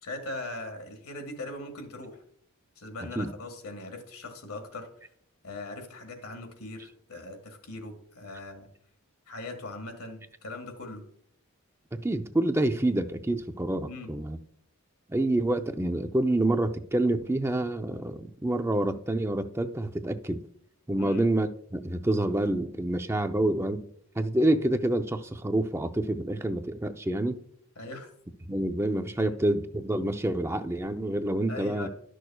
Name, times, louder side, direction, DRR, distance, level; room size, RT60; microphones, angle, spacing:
voice 1, 0.0-2.2 2.8-4.9 5.4-8.7 9.3-11.0 13.9-14.1 21.0-21.3 27.8-28.1 29.2-29.4 31.5-31.9, left 2 dB, 80° left, 1.7 m, -40 dB
voice 2, 11.9-14.4 15.1-20.4 20.9-23.9 24.2-27.4 28.5-31.9, right 1 dB, 10° right, 0.5 m, -27 dB
12.0 x 6.3 x 2.3 m
head